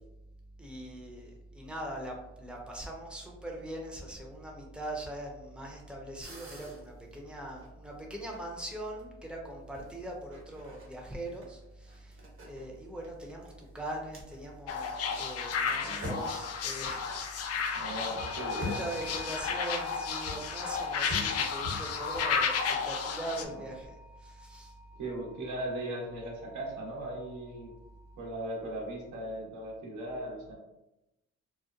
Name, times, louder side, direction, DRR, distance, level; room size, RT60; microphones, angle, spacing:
voice 1, 0.6-17.3 17.6-18.0 18.5-24.7, right 1 dB, 5° right, -1 dB, 0.6 m, -41 dB
sound 1, 6.2-7.9 8.3-9.0 9.7-15.2 15.5-15.6 15.9-16.5 18.6-19.2 20.3-20.6 21.1-22.3, left 2 dB, 45° right, 1.0 m, -43 dB
sound 2, 14.7-23.4, left 5 dB, 55° left, 0.4 m, -33 dB
voice 2, 15.8-16.2 17.7-18.8 23.5-23.6 25.0-27.7 28.2-30.5, right 1 dB, 75° right, -2 dB, 0.9 m, -38 dB
sound 3, 18.2-28.8, left 1 dB, 70° left, 1.1 m, -49 dB
2.9 x 2.1 x 2.4 m, 0.93 s
cardioid pair, 90°, 30 cm